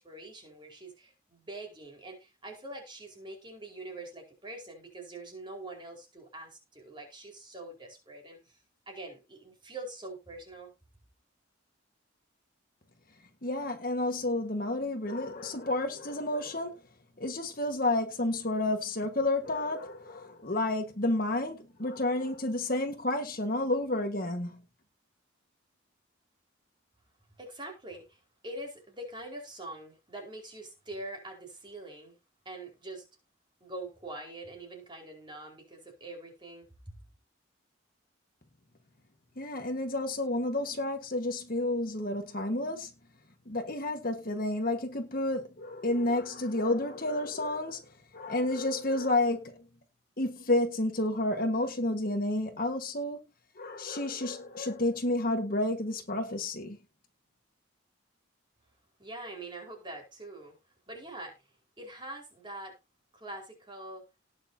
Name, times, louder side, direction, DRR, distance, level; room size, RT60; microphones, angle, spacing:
voice 1, 0.0-8.6 8.9-10.7 27.4-32.2 32.4-33.0 33.6-36.9 59.0-60.5 60.9-62.7 63.1-64.0, right 2 dB, 25° right, 4.7 m, -44 dB
voice 2, 13.4-16.8 17.2-24.6 39.4-42.9 43.5-49.7 50.2-53.2 53.6-56.8, left 2 dB, 45° left, 1.5 m, -30 dB
19.0 x 6.6 x 2.8 m
head